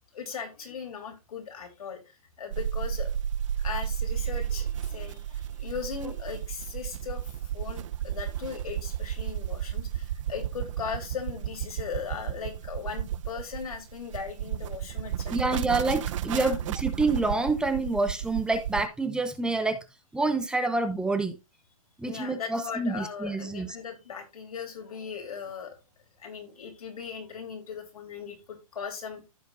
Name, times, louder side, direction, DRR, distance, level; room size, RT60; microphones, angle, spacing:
voice 1, 0.1-3.1 3.6-15.4 16.3-16.6 22.0-25.7 26.2-29.3, left 6 dB, 85° left, 3.3 m, -38 dB
sound 1, 2.5-18.9, right 10 dB, 60° right, 0.5 m, -33 dB
voice 2, 15.3-19.8 20.1-21.4 22.0-23.7, right 3 dB, 5° right, 0.8 m, -27 dB
15.0 x 5.1 x 2.5 m
hypercardioid pair, 140°, 18 cm